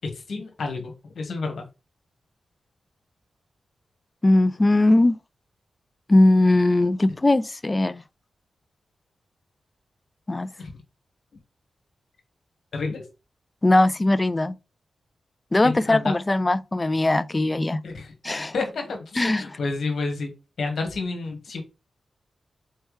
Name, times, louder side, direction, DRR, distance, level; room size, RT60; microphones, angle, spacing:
voice 1, 0.0-1.6 10.6-10.7 12.7-13.0 15.6-16.1 17.8-18.1 18.5-20.3 20.6-21.6, left 3 dB, 75° left, 1.5 m, -30 dB
voice 2, 4.2-5.2 6.1-8.0 10.3-10.5 13.6-14.5 15.5-17.8 18.2-18.5 19.2-19.6, left 2 dB, 30° left, 0.4 m, -20 dB
4.4 x 3.3 x 3.2 m
cardioid pair, 55°, 0 cm